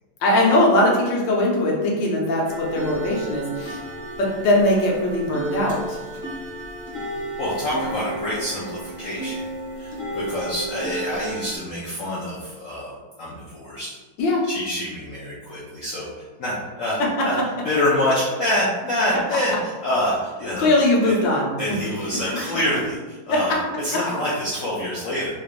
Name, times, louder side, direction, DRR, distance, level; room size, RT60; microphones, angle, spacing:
voice 1, 0.2-3.8 4.2-6.0 14.2-14.4 20.6-21.5 22.2-22.4 23.3-23.4, left 1 dB, 85° left, -3 dB, 1.5 m, -20 dB
sound 1, 2.4-11.6, right 2 dB, 30° right, 0.8 m, -33 dB
voice 2, 7.4-9.4 9.8-13.9 14.5-17.4 17.6-20.7 21.0-21.1 21.6-25.3, left 1 dB, 65° left, -6 dB, 0.8 m, -26 dB
3.5 x 3.2 x 2.4 m, 1.3 s
omnidirectional pair, 1.9 m